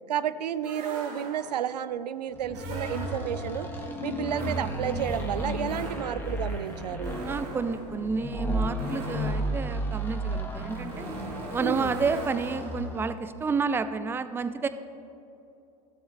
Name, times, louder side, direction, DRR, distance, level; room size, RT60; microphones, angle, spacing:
voice 1, 0.1-3.7 4.0-7.2 11.6-12.0, right 9 dB, 90° right, 15 dB, 0.4 m, -31 dB
sound 1, 0.6-1.7 2.5-3.6 4.3-13.0, right 3 dB, 65° right, 1.6 m, -42 dB
sound 2, 2.4-13.1, equal, 10° left, 1.5 m, -33 dB
voice 2, 7.3-11.1 11.5-14.7, right 4 dB, 10° right, 12 dB, 0.4 m, -30 dB
15.0 x 7.1 x 3.0 m, 2.8 s
hypercardioid pair, 90°, 21 cm